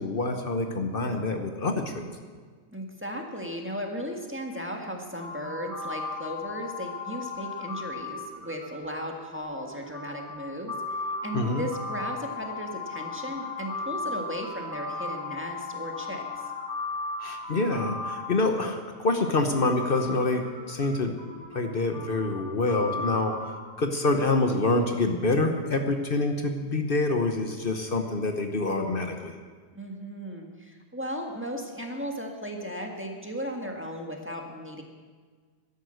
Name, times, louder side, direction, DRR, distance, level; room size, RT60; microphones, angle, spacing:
voice 1, 0.0-2.0 11.3-11.6 17.2-21.1 21.5-23.5 23.8-29.4, left 2 dB, 55° left, 5 dB, 1.3 m, -26 dB
voice 2, 2.7-16.2 29.7-34.8, equal, 10° right, 1 dB, 1.6 m, -36 dB
sound 1, 5.2-19.0 19.7-23.5, left 3 dB, 90° right, 3.7 m, -36 dB
13.0 x 11.0 x 7.8 m, 1.5 s
omnidirectional pair, 1.1 m